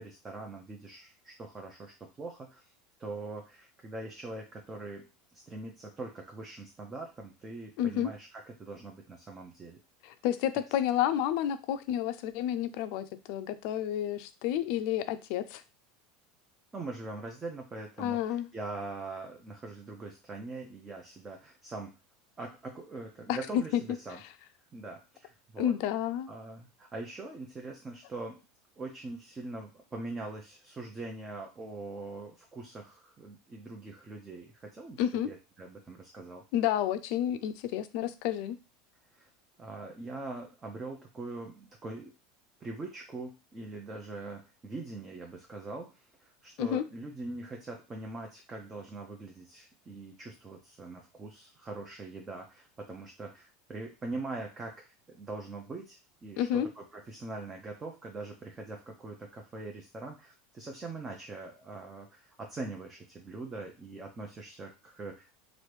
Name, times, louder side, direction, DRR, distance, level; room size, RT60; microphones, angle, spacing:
voice 1, 0.0-2.7 3.0-5.1 5.3-9.8 16.7-22.0 22.4-24.2 24.7-25.7 26.3-28.4 28.8-36.4 39.1-39.3 39.6-42.1 42.6-65.4, right 3 dB, 20° right, 1 dB, 0.6 m, -42 dB
voice 2, 7.8-8.1 10.0-15.6 18.0-18.5 23.3-23.8 25.6-26.3 35.0-35.3 36.5-38.6 46.6-46.8 56.4-56.7, left 11 dB, 65° left, 12 dB, 0.4 m, -30 dB
3.0 x 2.6 x 3.3 m, 0.30 s
supercardioid pair, 120°, 0 cm